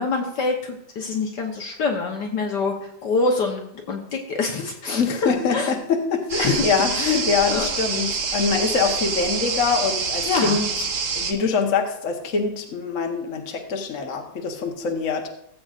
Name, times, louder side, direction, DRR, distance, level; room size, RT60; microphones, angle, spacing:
voice 1, 0.0-5.7 6.4-6.6 6.9-7.2 7.5-7.7 10.2-10.6, left 3 dB, 60° left, 2 dB, 1.5 m, -26 dB
voice 2, 4.9-10.9 11.1-15.3, left 5 dB, 45° left, 3 dB, 1.3 m, -24 dB
sound 1, 6.3-11.3, right 5 dB, 55° right, 1.4 m, -26 dB
17.5 x 7.7 x 2.5 m, 0.75 s
omnidirectional pair, 2.3 m